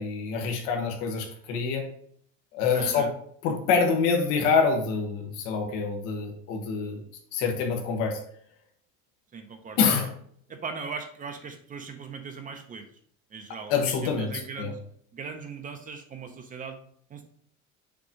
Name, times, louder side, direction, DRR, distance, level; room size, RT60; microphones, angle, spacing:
voice 1, 0.0-1.9 2.5-3.1 3.4-7.0 7.3-8.2 9.8-10.1 13.7-14.3 14.6-14.7, left 5 dB, 80° left, 2 dB, 1.4 m, -26 dB
voice 2, 2.7-3.1 9.3-10.1 10.5-12.9 13.3-14.8 15.1-16.8 17.1-17.2, right 5 dB, 25° right, 6 dB, 0.6 m, -39 dB
6.9 x 3.0 x 5.1 m, 0.62 s
cardioid pair, 150°, 31 cm